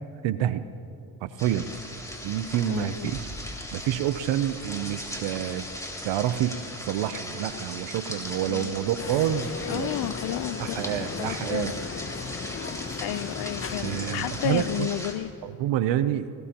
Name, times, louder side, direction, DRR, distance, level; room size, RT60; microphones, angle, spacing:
voice 1, 0.2-0.7 1.2-1.7 2.2-3.3 3.7-5.6 6.0-9.9 10.6-11.8 13.8-14.9 15.4-16.3, right 11 dB, 75° right, 13 dB, 0.7 m, -28 dB
sound 1, 1.4-15.1, left 1 dB, 5° left, 3.7 m, -38 dB
voice 2, 2.7-3.2 8.5-8.9 9.7-11.8 12.3-12.6 13.0-15.3, left 12 dB, 60° left, 17 dB, 0.7 m, -32 dB
sound 2, 9.0-14.9, left 6 dB, 30° left, 0.9 m, -36 dB
23.5 x 19.5 x 3.0 m, 2.8 s
supercardioid pair, 75°, 44 cm